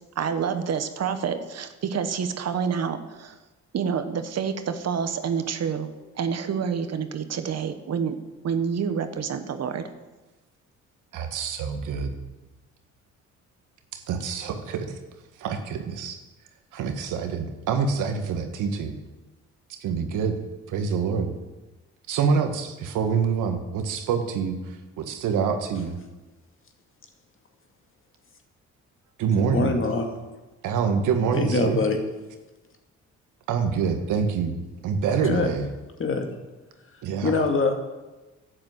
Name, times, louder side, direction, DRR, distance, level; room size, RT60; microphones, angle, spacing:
voice 1, 0.2-3.4 3.7-8.2 8.4-9.9, right 6 dB, 55° right, 9 dB, 1.3 m, -28 dB
voice 2, 11.1-12.1 13.9-15.0 15.4-16.2 16.7-18.9 19.7-20.4 20.7-21.3 22.1-24.6 25.0-26.0 29.2-29.8 30.6-31.8 33.5-34.6 34.8-35.7 37.0-37.3, right 6 dB, 85° right, 6 dB, 1.7 m, -26 dB
voice 3, 29.4-30.1 31.3-32.0 35.2-35.5 36.0-36.3 37.2-37.7, left 3 dB, 45° left, 4 dB, 2.3 m, -24 dB
11.0 x 8.6 x 8.0 m, 1.1 s
cardioid pair, 90°, 30 cm